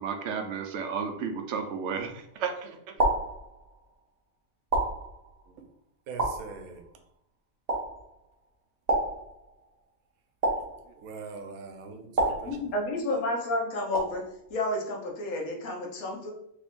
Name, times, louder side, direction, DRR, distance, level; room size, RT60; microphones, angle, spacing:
voice 1, 0.0-3.0, right 6 dB, 65° right, 5 dB, 0.8 m, -33 dB
sound 1, 1.8-2.3 3.0-3.9 4.7-5.6 6.2-7.0 7.7-8.3 8.9-9.8 10.4-11.3 12.2-13.1 13.9-14.5, right 2 dB, 35° right, 0.7 m, -31 dB
voice 2, 6.1-6.8 10.9-12.6, right 4 dB, 85° right, 6 dB, 1.1 m, -42 dB
voice 3, 12.3-14.2 14.5-16.3, left 1 dB, 80° left, 0 dB, 1.3 m, -31 dB
3.2 x 2.5 x 3.6 m, 0.75 s
omnidirectional pair, 1.5 m